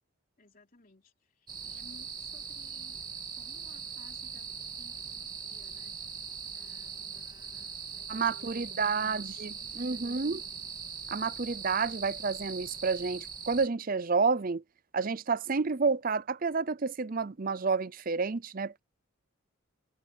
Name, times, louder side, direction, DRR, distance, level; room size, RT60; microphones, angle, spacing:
voice 1, 0.4-3.0 3.3-6.0 6.4-10.7, left 2 dB, 40° left, 3.5 m, -60 dB
sound 1, 1.5-13.7, right 6 dB, 20° right, 2.1 m, -41 dB
voice 2, 8.1-10.4 11.1-14.6 14.9-18.8, right 4 dB, 40° right, 0.6 m, -30 dB
head